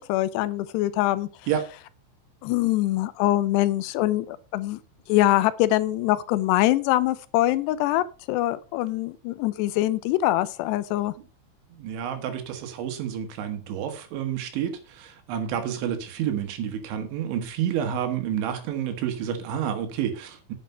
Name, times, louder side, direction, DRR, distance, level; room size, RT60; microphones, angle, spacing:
voice 1, 0.0-1.3 2.4-4.8 5.1-11.1, left 15 dB, 80° left, 2.5 m, -24 dB
voice 2, 11.7-20.5, right 9 dB, 80° right, 3.7 m, -29 dB
9.4 x 8.5 x 5.5 m
omnidirectional pair, 5.4 m